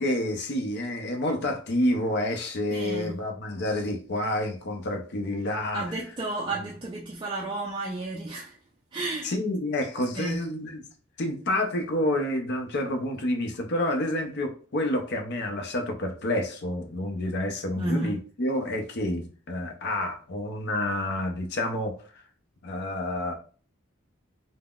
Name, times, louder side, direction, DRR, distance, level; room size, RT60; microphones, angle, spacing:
voice 1, 0.0-5.9 9.2-10.8 11.2-22.0 22.6-23.3, left 1 dB, 50° left, 0.5 m, -29 dB
voice 2, 2.7-3.2 5.7-8.6 8.9-9.3 10.1-10.4 17.8-18.1, right 2 dB, 25° right, 0.3 m, -32 dB
3.6 x 2.0 x 2.3 m
head